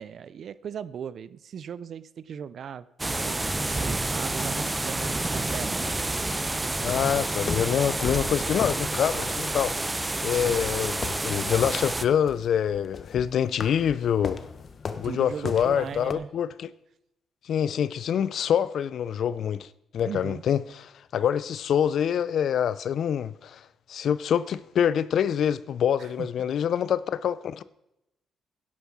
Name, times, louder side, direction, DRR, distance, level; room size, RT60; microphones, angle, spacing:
voice 1, 0.0-3.4 3.7-6.1 15.0-16.3 20.0-20.4 26.0-26.5, right 8 dB, 60° right, 0.5 m, -38 dB
sound 1, 3.0-12.0, right 2 dB, 15° right, 0.6 m, -29 dB
voice 2, 6.8-9.7 10.2-14.4 15.0-16.7 17.5-19.7 19.9-27.6, left 9 dB, 65° left, 0.5 m, -26 dB
sound 2, 6.9-16.1, left 5 dB, 45° left, 0.9 m, -38 dB
11.0 x 8.2 x 6.1 m
cardioid pair, 90°, 0 cm